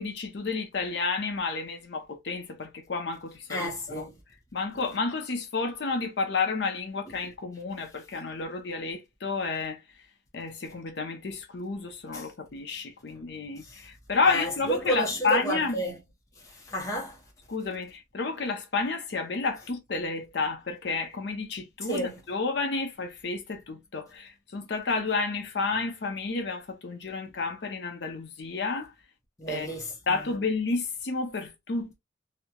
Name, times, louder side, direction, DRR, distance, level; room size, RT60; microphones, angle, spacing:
voice 1, 0.0-4.1 4.5-9.8 10.3-15.8 17.5-28.9 29.5-29.7 30.1-32.0, left 4 dB, 65° left, 0.6 m, -31 dB
voice 2, 3.5-4.1 12.1-12.2 13.6-13.8 14.3-16.0 16.4-17.2 21.9-22.2 29.4-30.2, right 1 dB, 15° left, 0.6 m, -31 dB
2.8 x 2.1 x 2.3 m
head